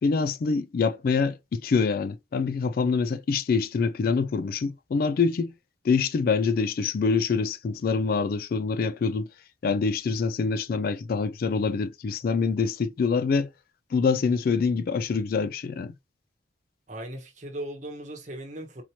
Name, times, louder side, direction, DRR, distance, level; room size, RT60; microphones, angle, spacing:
voice 1, 0.0-5.5 5.8-9.3 9.6-13.5 13.9-15.9, left 5 dB, 50° left, 0.3 m, -25 dB
voice 2, 16.9-18.8, right 1 dB, 40° right, 1.1 m, -38 dB
4.2 x 2.8 x 2.9 m
head